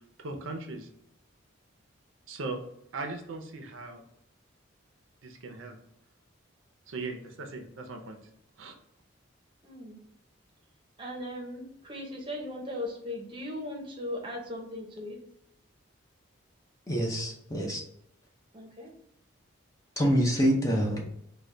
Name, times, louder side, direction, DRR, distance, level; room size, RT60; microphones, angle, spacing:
voice 1, 0.2-0.9 2.3-2.6 2.9-4.0 5.2-5.8 6.9-8.2 8.6-8.7, right 3 dB, 75° right, 4 dB, 0.6 m, -38 dB
voice 2, 9.6-10.0 11.0-15.2 18.5-18.9, left 1 dB, 25° right, 0 dB, 0.7 m, -38 dB
voice 3, 16.9-17.8 20.0-21.1, equal, 15° left, 0 dB, 0.5 m, -26 dB
3.7 x 2.3 x 3.3 m, 0.76 s
head